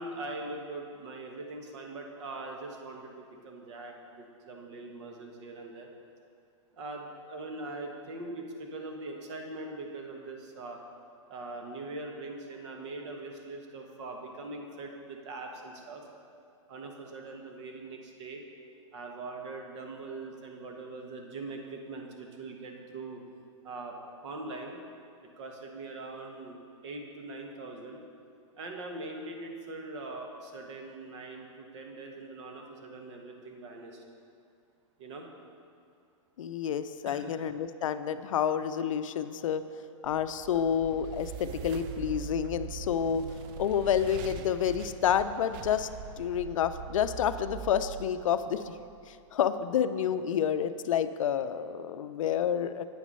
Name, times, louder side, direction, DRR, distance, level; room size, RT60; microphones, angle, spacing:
voice 1, 0.0-5.9 6.7-10.8 11.3-16.0 16.7-18.4 18.9-23.2 23.6-24.0 24.2-24.8 25.4-28.0 28.6-34.0 35.0-35.3 37.0-37.3, right 2 dB, 60° right, 2 dB, 1.4 m, -42 dB
voice 2, 36.4-39.6 40.0-43.2 43.6-45.9 46.2-48.6 49.3-52.9, left 9 dB, 80° left, 12 dB, 0.5 m, -29 dB
sound 1, 40.0-49.2, right 8 dB, 40° right, 0.4 m, -42 dB
8.7 x 6.2 x 5.4 m, 2.4 s
hypercardioid pair, 135°, 17 cm